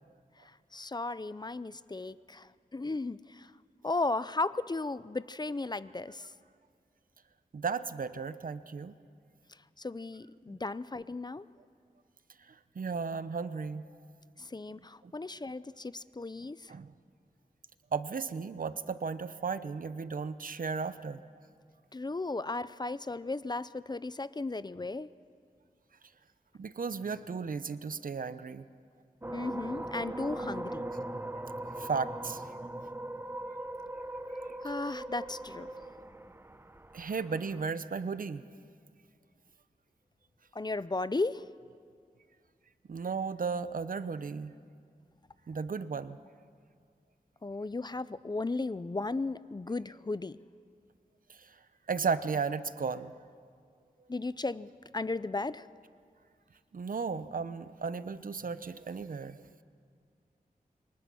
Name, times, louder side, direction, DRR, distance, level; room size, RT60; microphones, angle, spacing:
voice 1, 0.4-3.5 3.8-6.3 9.8-11.5 14.4-16.7 21.9-25.1 29.3-30.8 34.6-35.7 40.5-41.4 47.4-50.4 54.1-55.7, left 3 dB, 30° left, 16 dB, 0.5 m, -35 dB
voice 2, 7.5-9.0 10.5-10.6 12.8-13.9 15.0-15.1 16.7-16.9 17.9-21.2 26.6-28.7 31.8-32.5 36.9-38.4 42.9-44.5 45.5-46.2 51.3-51.5 51.9-53.1 56.7-59.4, right 5 dB, 70° right, 13 dB, 0.8 m, -35 dB
sound 1, 29.2-37.7, right 1 dB, 15° right, 0.8 m, -40 dB
27.5 x 24.0 x 6.3 m, 2.1 s
wide cardioid pair, 85°, 15 cm